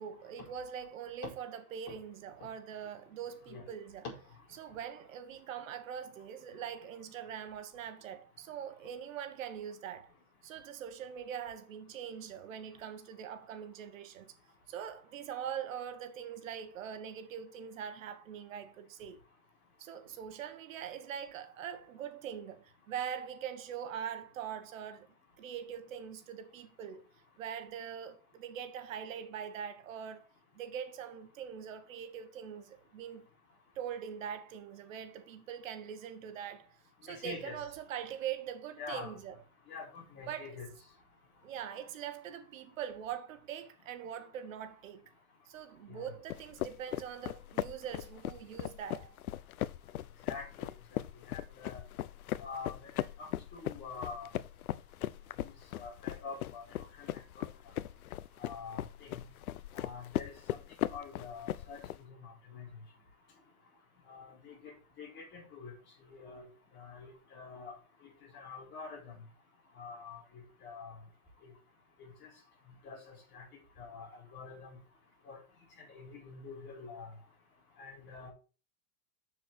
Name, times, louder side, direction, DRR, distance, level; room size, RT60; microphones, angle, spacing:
voice 1, 0.0-4.0 4.5-10.1 10.4-14.3 14.7-19.2 19.8-25.1 25.4-27.1 27.4-30.3 30.5-33.3 33.7-39.4 40.3-40.6 41.4-45.1 45.4-49.2, right 8 dB, 65° right, 1.5 m, -42 dB
voice 2, 37.0-37.6 38.7-39.1 39.7-40.7 45.9-46.1 50.3-51.8 52.4-52.9 53.2-54.3 55.7-56.6 57.0-57.5 58.4-59.2 59.7-60.6 60.9-61.8 62.2-62.7 64.1-64.7 65.0-65.7 66.1-66.5 66.7-67.8 68.3-69.1 69.8-70.9 71.4-71.5 72.0-72.3 72.8-73.0 73.3-73.4 73.8-74.8 75.2-75.4 75.8-77.1 77.8-78.3, left 5 dB, 25° left, 5.1 m, -46 dB
sound 1, 46.3-62.0, left 13 dB, 80° left, 0.7 m, -39 dB
7.4 x 6.8 x 4.5 m
supercardioid pair, 150°, 42 cm